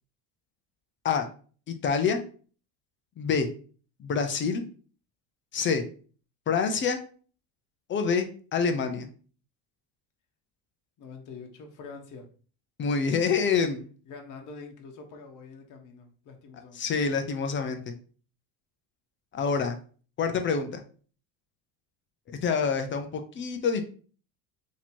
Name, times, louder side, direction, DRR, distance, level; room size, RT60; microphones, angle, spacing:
voice 1, 1.7-2.2 3.2-3.5 4.0-4.6 5.5-5.8 6.5-7.0 7.9-9.1 12.8-13.8 16.7-17.9 19.3-19.8 20.2-20.8 22.4-23.8, left 5 dB, 25° left, 7 dB, 0.5 m, -26 dB
voice 2, 11.0-12.3 14.0-16.9, left 4 dB, 45° left, 3 dB, 1.0 m, -45 dB
3.0 x 2.8 x 4.2 m, 0.41 s
supercardioid pair, 125°, 44 cm